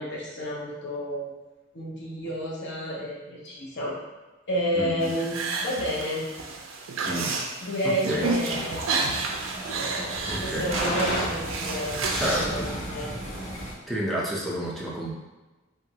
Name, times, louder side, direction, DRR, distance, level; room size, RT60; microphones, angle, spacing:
voice 1, 0.0-1.3 1.7-4.0 4.5-6.2 7.6-8.8 9.7-13.1, equal, 60° left, -4 dB, 0.8 m, -31 dB
voice 2, 4.7-5.1 7.1-7.3 7.8-8.3 10.3-10.7 12.1-12.7 13.9-15.1, equal, ahead, -5 dB, 0.5 m, -30 dB
sound 1, 5.0-12.5, right 4 dB, 70° right, 0.4 m, -31 dB
sound 2, 8.1-13.7, equal, 85° left, 1.0 m, -33 dB
3.0 x 2.4 x 2.8 m, 1.2 s
head